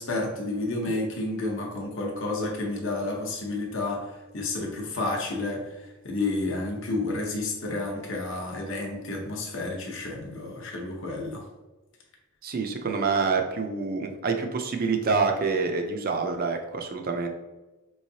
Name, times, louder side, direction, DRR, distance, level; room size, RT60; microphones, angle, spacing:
voice 1, 0.0-11.4, left 2 dB, 55° left, -1 dB, 0.8 m, -31 dB
voice 2, 12.4-17.3, right 4 dB, 40° right, 4 dB, 0.5 m, -27 dB
4.6 x 3.1 x 2.7 m, 1.1 s
head